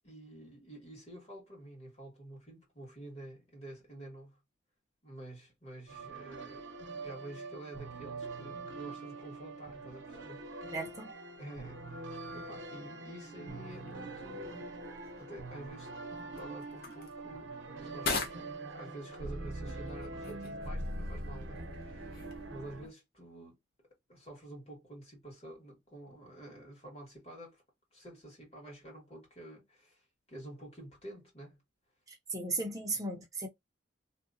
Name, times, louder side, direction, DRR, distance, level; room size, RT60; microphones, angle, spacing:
voice 1, 0.0-4.4 5.0-6.6 7.0-10.7 11.4-12.0 12.3-14.8 15.2-15.9 16.4-17.5 17.8-18.5 18.7-22.2 22.5-23.6 24.1-27.6 27.9-30.0 30.3-31.6, right 1 dB, 30° left, 1.5 m, -49 dB
sound 1, 5.9-22.9, right 2 dB, 80° right, 0.7 m, -43 dB
voice 2, 10.7-11.1 32.1-33.5, right 3 dB, 20° right, 0.6 m, -36 dB
sound 2, 13.7-22.9, left 3 dB, 50° left, 0.7 m, -44 dB
2.8 x 2.2 x 2.5 m
head